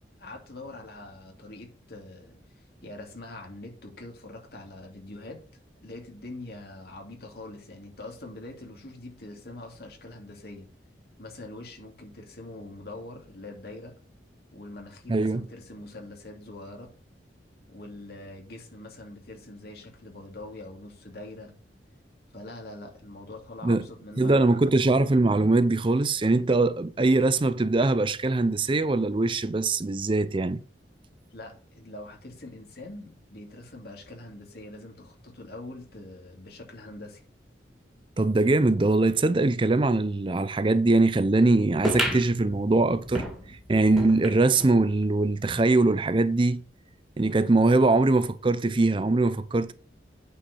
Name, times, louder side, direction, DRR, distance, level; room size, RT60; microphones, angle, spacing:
voice 1, 0.2-5.4 5.8-10.7 11.2-13.9 14.5-16.9 17.7-21.5 22.3-24.7 31.3-37.2, left 2 dB, 60° left, 2.7 m, -43 dB
voice 2, 15.1-15.4 23.6-23.8 24.2-30.6 38.2-43.3 43.7-46.6 47.2-49.7, right 2 dB, 30° right, 0.5 m, -22 dB
sound 1, 41.8-44.8 45.2-45.3 45.5-45.6 46.4-46.5, equal, ahead, 2.0 m, -32 dB
8.8 x 4.7 x 6.8 m
head